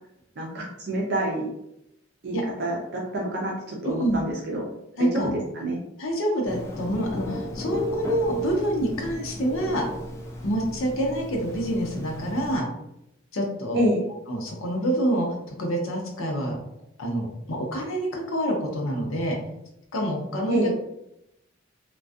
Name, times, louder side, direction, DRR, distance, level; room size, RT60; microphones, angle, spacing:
voice 1, 0.4-1.5 2.2-4.7 4.9-5.3 5.5-5.8 13.7-14.0 20.5-20.7, right 1 dB, 55° right, -2 dB, 0.5 m, -27 dB
voice 2, 3.8-4.2 5.0-5.3 6.0-9.9 10.4-12.6 13.3-13.8 14.3-16.6 17.0-19.4 19.9-20.6, right 1 dB, 85° left, 0 dB, 0.7 m, -27 dB
Telephone, 6.4-12.6, equal, 15° left, 0.3 m, -34 dB
2.5 x 2.3 x 2.3 m, 0.82 s
head